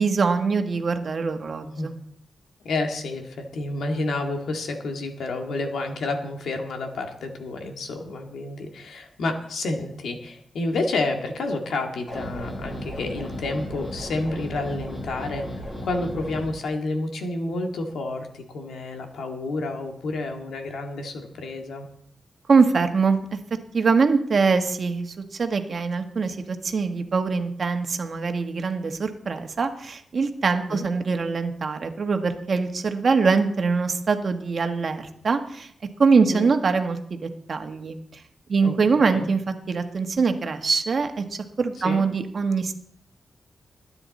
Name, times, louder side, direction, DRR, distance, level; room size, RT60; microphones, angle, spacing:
voice 1, 0.0-2.0 22.5-23.4 23.7-35.7 36.0-38.2 38.5-41.2 41.6-42.7, right 4 dB, 55° right, 6 dB, 1.5 m, -23 dB
voice 2, 2.6-21.9 30.7-30.9 36.3-36.5 38.6-39.3 41.8-42.0, left 2 dB, 85° left, 4 dB, 2.1 m, -30 dB
sound 1, 12.1-16.5, equal, 55° left, 7.6 m, -35 dB
20.5 x 9.8 x 4.2 m, 0.70 s
cardioid pair, 90°, 0 cm